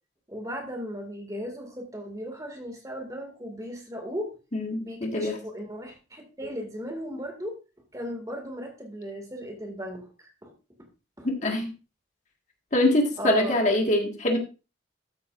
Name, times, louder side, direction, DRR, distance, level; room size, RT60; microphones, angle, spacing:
voice 1, 0.3-4.4 4.8-7.6 7.9-10.1 10.4-10.5 11.2-11.3 13.2-13.6, equal, 15° right, 3 dB, 2.2 m, -36 dB
voice 2, 4.5-5.4 11.2-11.7 12.7-14.4, left 1 dB, 40° left, 2 dB, 1.8 m, -24 dB
13.5 x 8.4 x 2.5 m, 0.31 s
head